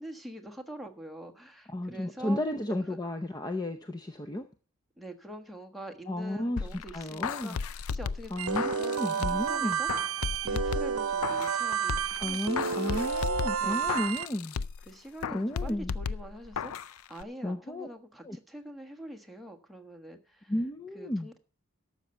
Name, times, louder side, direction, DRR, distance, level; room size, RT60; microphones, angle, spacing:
voice 1, 0.0-2.4 2.9-3.0 5.0-10.1 10.4-13.0 13.6-13.9 14.9-20.5 20.9-21.4, right 1 dB, ahead, 5 dB, 1.3 m, -45 dB
voice 2, 1.7-4.5 6.1-7.6 8.3-9.8 12.2-14.6 15.3-15.9 17.4-17.9 18.2-18.4 20.5-21.3, left 1 dB, 20° left, 7 dB, 0.6 m, -33 dB
sound 1, 6.6-9.6 9.9-11.6 11.9-14.9 15.2-16.9 17.2-17.3, left 6 dB, 80° left, 0.4 m, -35 dB
sound 2, 8.4-14.3, right 6 dB, 80° right, 0.7 m, -30 dB
12.5 x 6.6 x 7.9 m, 0.41 s
head